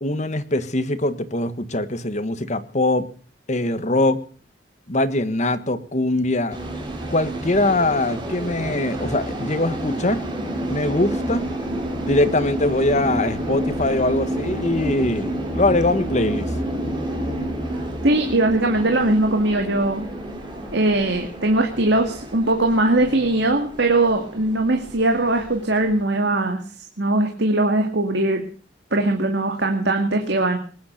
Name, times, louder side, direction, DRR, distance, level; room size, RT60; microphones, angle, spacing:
voice 1, 0.0-3.1 3.5-4.2 4.9-6.6 7.1-10.2 10.7-11.5 12.1-16.5, left 2 dB, 40° left, 11 dB, 1.5 m, -22 dB
sound 1, 6.5-26.0, right 1 dB, 25° right, 5.5 m, -29 dB
voice 2, 18.0-20.1 20.7-26.6 27.0-28.4 28.9-30.6, right 2 dB, 65° right, 3 dB, 2.2 m, -20 dB
20.0 x 10.5 x 6.6 m, 0.42 s
head